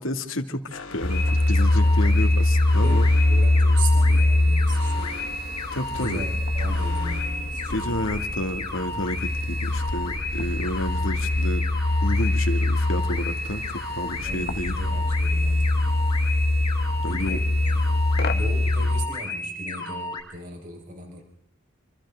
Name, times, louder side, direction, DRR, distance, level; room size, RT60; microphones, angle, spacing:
voice 1, 0.0-3.1 5.7-6.2 7.7-11.6 12.0-14.8 17.0-17.4, left 1 dB, 70° left, 7 dB, 2.4 m, -30 dB
Alarm, 0.7-8.5, left 3 dB, 90° left, 2.8 m, -44 dB
sound 1, 1.0-19.1, left 2 dB, 45° left, 1.0 m, -23 dB
sound 2, 1.1-20.2, left 1 dB, 20° left, 6.9 m, -33 dB
voice 2, 2.0-5.1 6.0-8.0 14.2-15.8 17.1-18.0 18.3-21.2, right 2 dB, 40° right, 2 dB, 5.1 m, -38 dB
28.5 x 25.5 x 3.8 m, 0.71 s
head